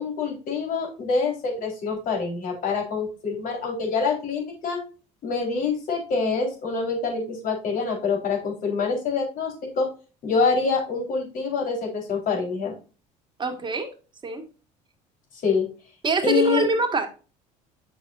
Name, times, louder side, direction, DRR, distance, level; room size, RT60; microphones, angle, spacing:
voice 1, 0.0-4.8 5.2-9.9 10.2-12.7 15.4-15.7 16.2-16.6, left 4 dB, 55° left, 0 dB, 4.0 m, -26 dB
voice 2, 13.4-13.9 14.2-14.4 16.0-17.1, right 3 dB, 30° right, 5 dB, 1.7 m, -24 dB
8.5 x 6.2 x 2.5 m, 0.34 s
supercardioid pair, 95°, 16 cm